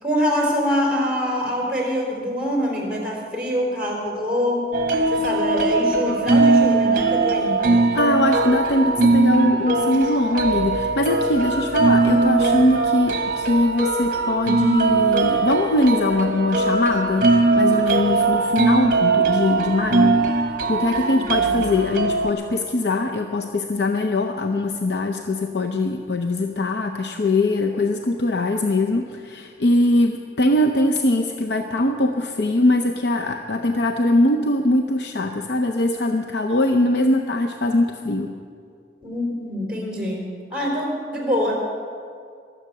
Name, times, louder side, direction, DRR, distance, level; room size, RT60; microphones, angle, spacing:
voice 1, 0.0-4.7 5.1-7.8 21.0-21.5 39.0-41.5, equal, 5° right, -2 dB, 3.6 m, -25 dB
sound 1, 4.7-22.3, right 3 dB, 50° right, 1.0 m, -20 dB
voice 2, 7.9-20.3 20.7-38.4, left 2 dB, 70° left, 4 dB, 0.6 m, -21 dB
22.0 x 7.9 x 6.6 m, 2.3 s
head